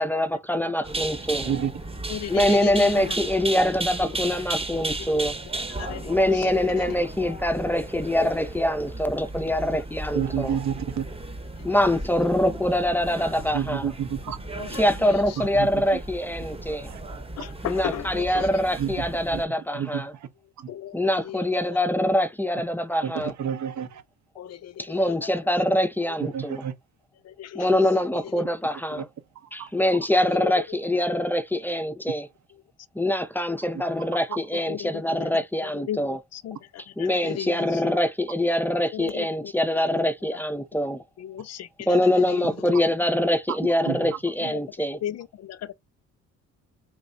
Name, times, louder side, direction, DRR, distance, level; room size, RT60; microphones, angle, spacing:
voice 1, 0.0-1.5 2.3-5.3 6.1-10.6 11.6-13.9 14.7-16.9 17.6-20.1 20.9-23.3 24.8-26.6 27.6-29.1 29.5-32.3 33.0-36.2 37.0-41.0 41.9-45.0, left 1 dB, 5° left, 0.5 m, -24 dB
sound 1, 0.8-19.4, right 2 dB, 20° right, 0.9 m, -35 dB
voice 2, 2.1-3.2 4.1-4.2 5.5-7.0 8.2-8.3 11.5-12.3 14.5-15.6 17.4-18.6 20.7-21.8 24.4-25.8 26.1-26.3 27.2-28.5 30.1-30.9 34.3-37.9 38.9-39.5 39.9-40.1 41.2-42.7 43.0-43.1 44.4-44.6 44.9-45.7, left 11 dB, 60° left, 0.5 m, -37 dB
voice 3, 10.1-11.0 13.5-14.4 15.4-15.7 16.9-17.0 18.8-19.0 19.3-19.4 19.7-20.0 20.6-20.7 23.0-24.0 26.2-26.7 28.9-29.0 29.4-29.7 43.9-44.0, right 9 dB, 70° right, 0.8 m, -29 dB
3.4 x 3.1 x 2.6 m
cardioid pair, 90°, 30 cm